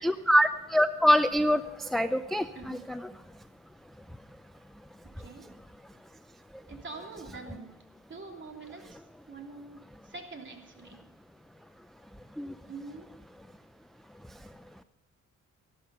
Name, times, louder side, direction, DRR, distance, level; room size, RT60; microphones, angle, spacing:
voice 1, 0.0-3.1 12.4-12.5, equal, ahead, 11 dB, 0.5 m, -25 dB
voice 2, 6.7-7.7 8.1-9.0 9.3-9.8 10.0-11.0 12.7-13.1, right 3 dB, 40° right, 2 dB, 3.1 m, -44 dB
14.0 x 12.5 x 5.7 m, 0.93 s
cardioid pair, 90°, 30 cm